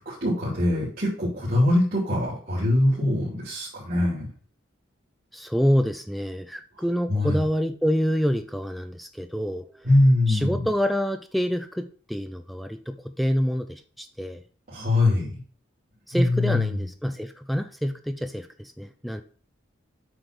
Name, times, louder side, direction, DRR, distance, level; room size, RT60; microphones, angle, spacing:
voice 1, 0.0-4.3 7.1-7.4 9.8-10.7 14.7-15.3 16.1-16.8, left 1 dB, 45° right, -9 dB, 2.8 m, -22 dB
voice 2, 5.3-9.9 10.3-14.4 16.1-19.2, equal, ahead, 8 dB, 0.4 m, -27 dB
7.9 x 3.4 x 6.0 m, 0.40 s
head